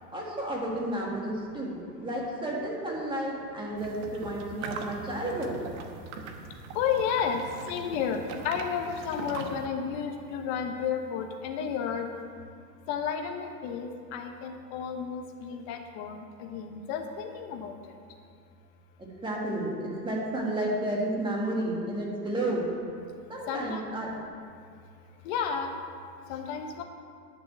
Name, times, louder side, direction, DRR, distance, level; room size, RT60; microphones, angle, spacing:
voice 1, 0.1-5.6 19.0-22.7 23.3-24.1, right 1 dB, 10° right, -3 dB, 2.0 m, -32 dB
sound 1, 3.8-9.7, right 5 dB, 45° right, 1.3 m, -41 dB
voice 2, 6.7-8.2 8.4-12.1 12.9-17.8 23.5-23.8 25.2-25.7 26.3-26.8, left 7 dB, 40° left, 4 dB, 1.3 m, -32 dB
11.0 x 6.2 x 7.6 m, 2.2 s
hypercardioid pair, 140°, 50 cm